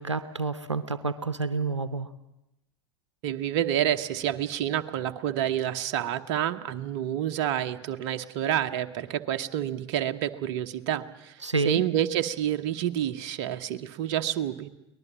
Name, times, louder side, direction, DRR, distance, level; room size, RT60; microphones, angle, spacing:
voice 1, 0.0-2.1 11.4-11.8, right 3 dB, 85° right, 13 dB, 0.8 m, -29 dB
voice 2, 3.2-11.4 11.6-14.7, right 11 dB, 50° right, 8 dB, 1.0 m, -28 dB
23.0 x 19.5 x 7.3 m, 0.89 s
figure-of-eight pair, 85°, 15 cm